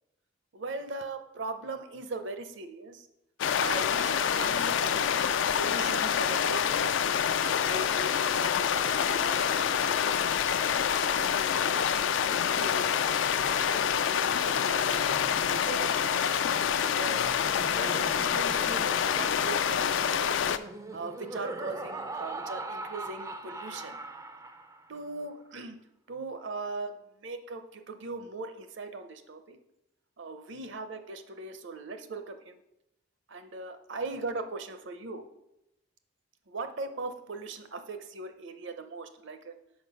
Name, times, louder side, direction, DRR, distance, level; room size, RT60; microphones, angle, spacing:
voice 1, 0.5-3.1 3.5-7.0 7.4-10.2 10.7-13.2 13.5-16.1 16.8-17.2 17.6-20.6 20.9-24.0 24.9-25.8 26.1-29.6 30.2-32.6 33.3-35.2 36.5-39.5, right 3 dB, 60° right, 8 dB, 0.7 m, -40 dB
sound 1, 3.4-20.6, left 8 dB, 65° left, 0.3 m, -27 dB
Laughter, 14.5-25.0, right 2 dB, 15° right, 0.4 m, -42 dB
5.9 x 5.4 x 5.4 m, 0.86 s
head